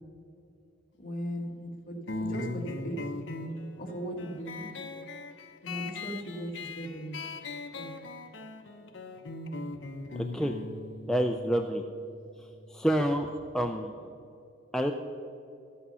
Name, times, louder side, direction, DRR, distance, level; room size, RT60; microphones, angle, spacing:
voice 1, 1.0-3.0 3.8-4.7 5.6-6.5 6.7-7.3 7.7-7.9, equal, 45° left, 0 dB, 1.7 m, -37 dB
sound 1, 2.1-13.2, left 2 dB, 65° left, 0.7 m, -40 dB
voice 2, 10.2-10.5 11.1-11.8 12.7-13.3 13.5-13.9 14.7-14.9, equal, 5° left, 4 dB, 0.3 m, -27 dB
12.5 x 8.5 x 5.5 m, 2.7 s
head